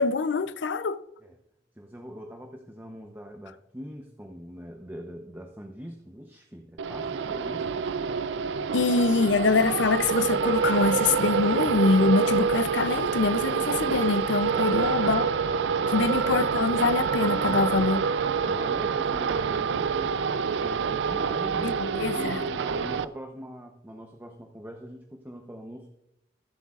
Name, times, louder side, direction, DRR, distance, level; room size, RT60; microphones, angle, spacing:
voice 1, 0.0-1.0 8.7-15.3 15.9-18.0 21.6-22.4, left 4 dB, 85° left, 0.6 m, -24 dB
voice 2, 1.7-7.9 14.7-15.0 18.4-21.7 22.1-25.9, equal, 10° right, 0.8 m, -42 dB
sound 1, 6.8-23.0, right 6 dB, 80° right, 0.4 m, -27 dB
21.5 x 8.0 x 2.4 m
head